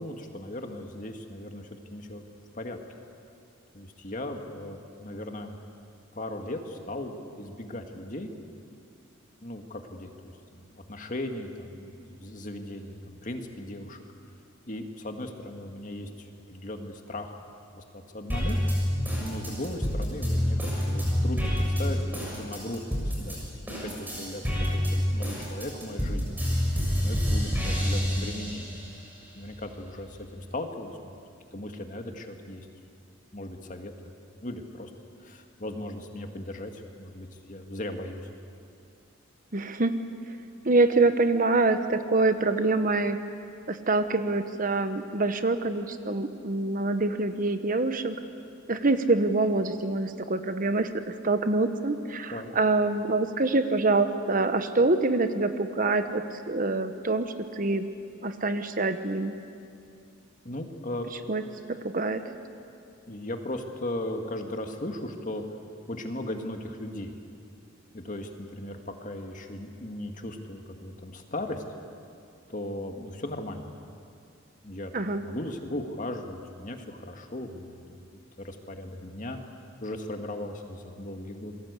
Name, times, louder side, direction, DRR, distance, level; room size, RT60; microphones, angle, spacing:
voice 1, 0.0-2.2 2.5-2.8 3.7-5.6 6.1-8.3 9.4-14.0 14.7-17.4 17.7-18.6 19.2-26.4 27.0-28.8 29.3-31.1 31.5-32.7 33.3-33.9 34.4-34.9 35.2-38.3 52.3-52.5 60.4-61.1 63.1-65.4 65.9-67.1 67.9-71.6 72.5-73.7 74.6-74.9 75.2-77.8 78.1-79.4 79.8-81.5, left 1 dB, 40° left, 4 dB, 2.0 m, -37 dB
sound 1, 18.3-23.4 23.7-28.9 29.3-30.3, equal, 10° right, 6.7 m, -27 dB
voice 2, 39.5-40.0 40.6-43.2 43.7-48.2 48.7-50.9 51.2-57.8 58.2-59.3 61.3-61.4 61.7-62.2 74.9-75.2, right 3 dB, 40° right, 9 dB, 1.1 m, -25 dB
28.0 x 22.5 x 8.3 m, 2.5 s
head